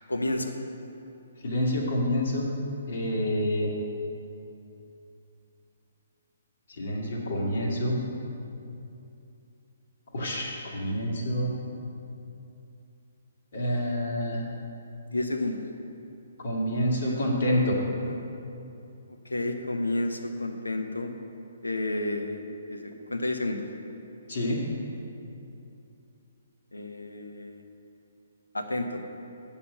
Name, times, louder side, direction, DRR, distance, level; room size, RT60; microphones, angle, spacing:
voice 1, 0.1-0.5 15.1-15.6 17.0-17.2 18.0-18.3 19.1-21.1 21.6-22.4 22.7-23.7 26.7-27.6 28.5-29.0, left 2 dB, 75° left, 5 dB, 0.9 m, -31 dB
voice 2, 1.4-2.5 2.9-3.7 6.8-8.0 10.1-11.5 13.5-14.4 16.4-17.8 24.3-24.6, equal, 50° left, -2 dB, 2.0 m, -27 dB
7.3 x 6.9 x 7.8 m, 2.7 s
figure-of-eight pair, 130°, 0 cm